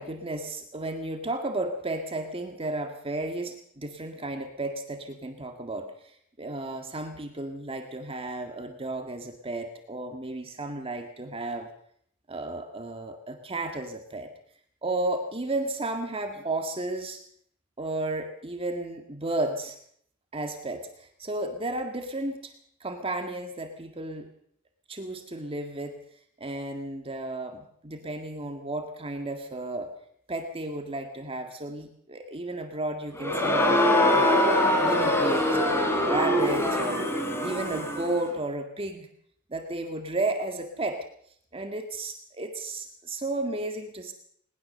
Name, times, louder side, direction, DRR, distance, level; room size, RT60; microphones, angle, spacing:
voice 1, 0.0-11.7 12.3-14.3 14.8-17.2 17.8-19.8 20.3-22.5 22.8-24.3 24.9-26.0 26.4-29.9 30.3-37.1 37.4-39.1 39.5-41.1 41.5-44.1, right 2 dB, 30° right, 5 dB, 1.9 m, -33 dB
Crowd, 33.1-38.2, left 1 dB, 15° left, 3.6 m, -23 dB
20.0 x 19.5 x 6.7 m, 0.67 s
head